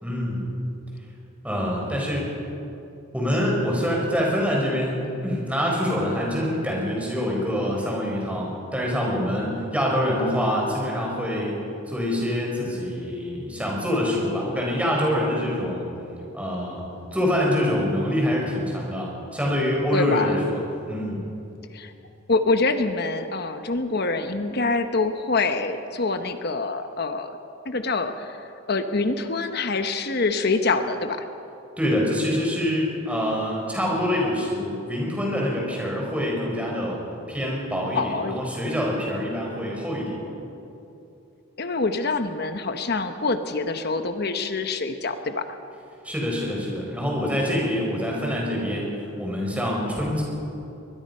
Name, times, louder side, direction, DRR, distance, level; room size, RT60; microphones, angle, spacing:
voice 1, 0.0-0.5 1.4-2.3 3.1-11.5 11.9-15.9 16.3-16.8 17.1-20.6 20.9-21.2 31.8-37.0 37.3-40.2 46.0-48.9 49.2-50.2, equal, 5° right, -2 dB, 4.7 m, -25 dB
voice 2, 19.9-20.4 21.7-21.9 22.3-27.3 27.6-28.4 28.7-31.3 37.9-38.4 41.6-45.4, left 3 dB, 50° left, 8 dB, 1.0 m, -25 dB
23.5 x 20.5 x 5.6 m, 2.8 s
head